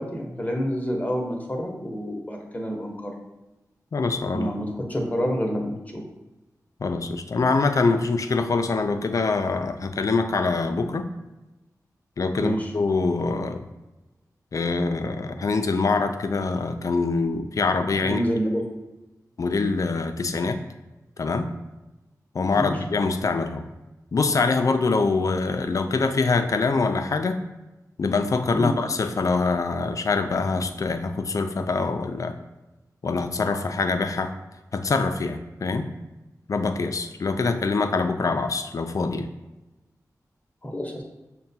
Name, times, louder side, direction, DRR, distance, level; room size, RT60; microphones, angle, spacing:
voice 1, 0.0-3.1 4.3-6.0 12.4-12.7 18.0-18.6 22.5-22.7 28.5-28.8 40.6-41.0, equal, 25° left, 1 dB, 0.9 m, -28 dB
voice 2, 3.9-4.5 6.8-11.1 12.2-13.6 14.5-18.2 19.4-20.6 21.2-21.5 22.3-23.6 24.1-27.4 28.0-32.3 33.0-34.3 34.7-35.9 36.5-39.3, left 4 dB, 60° left, 8 dB, 0.3 m, -24 dB
5.8 x 2.2 x 2.7 m, 1.0 s
cardioid pair, 45°, 7 cm